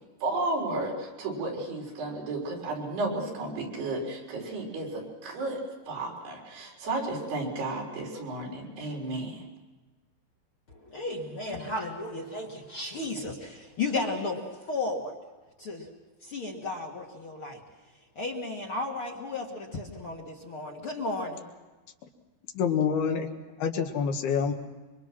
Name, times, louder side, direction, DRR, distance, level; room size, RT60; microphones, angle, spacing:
voice 1, 0.2-9.4, right 2 dB, 85° right, 0 dB, 6.2 m, -33 dB
voice 2, 10.7-15.1 15.6-15.9 16.2-17.6 18.2-21.5, left 2 dB, 45° left, 0 dB, 1.9 m, -34 dB
voice 3, 22.5-23.3 23.6-24.5, left 6 dB, 75° left, 4 dB, 3.5 m, -26 dB
25.5 x 24.0 x 6.0 m, 1.2 s
omnidirectional pair, 4.6 m